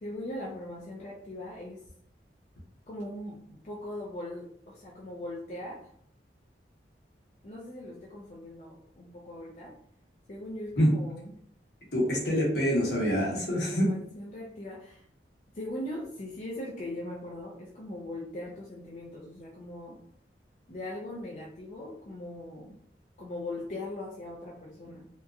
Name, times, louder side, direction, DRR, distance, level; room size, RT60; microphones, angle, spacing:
voice 1, 0.0-1.8 2.9-5.9 7.4-9.8 10.3-11.3 13.7-15.0 15.5-20.0 20.7-22.8 23.2-25.1, left 1 dB, 40° left, -4 dB, 0.4 m, -40 dB
voice 2, 11.9-13.9, equal, 70° left, -3 dB, 1.0 m, -25 dB
2.8 x 2.3 x 2.3 m, 0.65 s
head